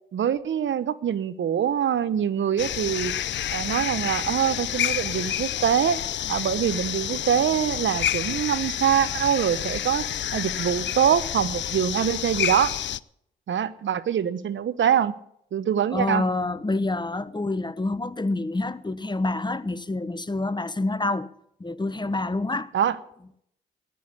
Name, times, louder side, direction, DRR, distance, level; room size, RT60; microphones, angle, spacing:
voice 1, 0.1-3.1 3.5-6.0 6.3-10.1 10.3-12.7 13.5-15.1 15.5-16.2 22.7-23.0, right 9 dB, 65° right, 1.0 m, -24 dB
sound 1, 2.6-13.0, left 11 dB, 60° left, 0.5 m, -29 dB
voice 2, 15.9-21.3 21.6-22.7, left 2 dB, 20° left, 1.0 m, -27 dB
14.0 x 10.0 x 8.5 m
supercardioid pair, 45°, 21 cm